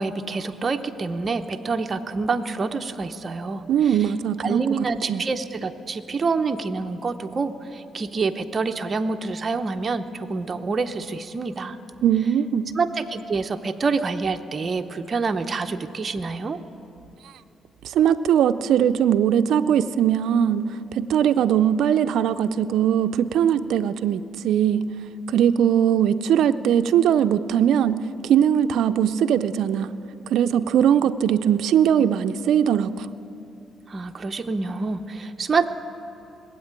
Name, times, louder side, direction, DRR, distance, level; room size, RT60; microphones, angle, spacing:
voice 1, 0.0-4.1 4.4-11.8 12.7-16.6 33.9-35.7, right 4 dB, 35° right, 6 dB, 0.7 m, -27 dB
voice 2, 3.7-5.2 12.0-12.6 17.8-20.7 20.9-24.8 25.3-29.9 30.3-33.1, right 9 dB, 75° right, 12 dB, 0.4 m, -20 dB
19.5 x 8.1 x 8.8 m, 2.9 s
cardioid pair, 90°, 0 cm